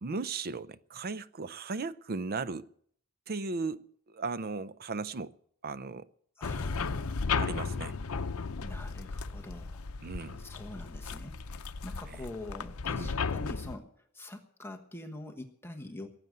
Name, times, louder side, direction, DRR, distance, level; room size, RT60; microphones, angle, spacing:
voice 1, 0.0-2.7 3.3-5.4 5.6-6.1 7.4-8.0 10.0-10.4 12.1-12.2 13.0-13.1, right 4 dB, 45° right, 0.6 m, -36 dB
sound 1, 6.4-13.8, left 5 dB, 85° left, 0.7 m, -35 dB
voice 2, 6.4-7.3 8.6-9.8 10.4-13.9 14.1-16.2, left 1 dB, 10° left, 1.3 m, -45 dB
18.5 x 7.9 x 9.2 m
head